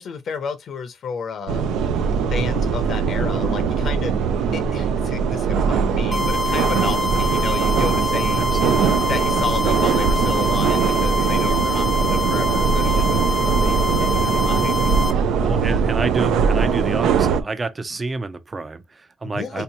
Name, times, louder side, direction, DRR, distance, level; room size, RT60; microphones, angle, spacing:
voice 1, 0.0-1.6 2.2-4.2 4.5-8.4 9.0-15.2 19.2-19.6, left 6 dB, 60° left, 0.5 m, -32 dB
sound 1, 1.5-17.4, right 6 dB, 85° right, 0.5 m, -21 dB
sound 2, 6.1-15.1, left 2 dB, 5° left, 0.7 m, -25 dB
voice 2, 8.4-9.0 15.4-19.6, right 3 dB, 30° right, 0.5 m, -29 dB
3.3 x 2.7 x 2.7 m
cardioid pair, 90°, 0 cm